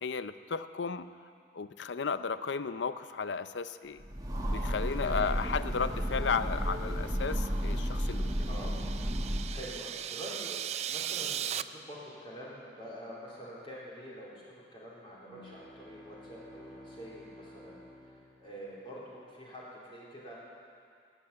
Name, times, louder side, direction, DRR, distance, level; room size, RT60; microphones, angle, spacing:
voice 1, 0.0-1.1 1.5-4.0 4.5-8.3, left 5 dB, 80° left, 12 dB, 0.6 m, -34 dB
Train, 4.0-9.7, equal, 20° right, 1.3 m, -33 dB
sound 1, 7.5-11.6, right 10 dB, 35° right, 0.3 m, -38 dB
voice 2, 9.5-20.4, equal, 30° left, -7 dB, 3.4 m, -46 dB
sound 2, 15.1-19.2, equal, 5° left, 3.5 m, -53 dB
20.0 x 8.3 x 8.5 m, 2.3 s
head